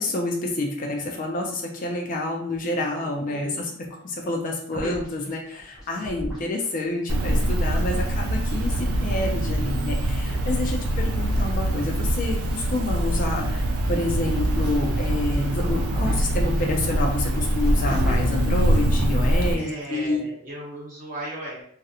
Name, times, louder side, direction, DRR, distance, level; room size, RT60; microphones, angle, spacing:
voice 1, 0.0-20.2, left 2 dB, 40° left, 1 dB, 0.3 m, -28 dB
voice 2, 2.9-3.7 10.6-11.1 19.6-21.6, right 1 dB, 40° right, -6 dB, 1.1 m, -37 dB
sound 1, 4.7-6.8 7.2-12.1 12.6-19.3, equal, ahead, 0.7 m, -38 dB
Cricket, 7.1-19.5, right 1 dB, 80° right, 0.4 m, -24 dB
2.4 x 2.1 x 2.7 m, 0.62 s
head